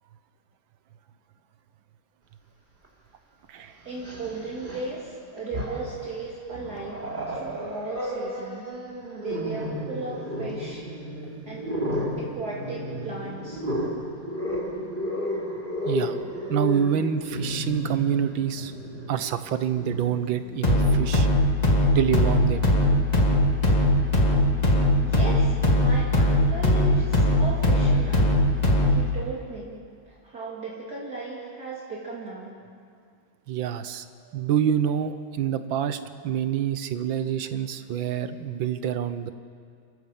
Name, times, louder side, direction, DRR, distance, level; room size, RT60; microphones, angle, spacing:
Growling, 2.8-2.9 3.9-4.9 5.4-6.1 6.5-21.1, equal, 20° right, 3.3 m, -33 dB
voice 1, 3.8-8.6 9.1-10.9 11.5-11.8 12.2-13.6 25.0-28.4 28.9-29.8 30.1-32.6, right 3 dB, 45° right, -5 dB, 3.1 m, -36 dB
voice 2, 15.9-16.2 16.5-18.7 19.1-21.3 21.9-22.7 33.5-34.0 34.3-39.3, right 9 dB, 70° right, 11 dB, 1.6 m, -26 dB
sound 1, 20.6-29.1, left 1 dB, 20° left, 1.9 m, -20 dB
29.0 x 14.5 x 7.3 m, 2.2 s
omnidirectional pair, 2.3 m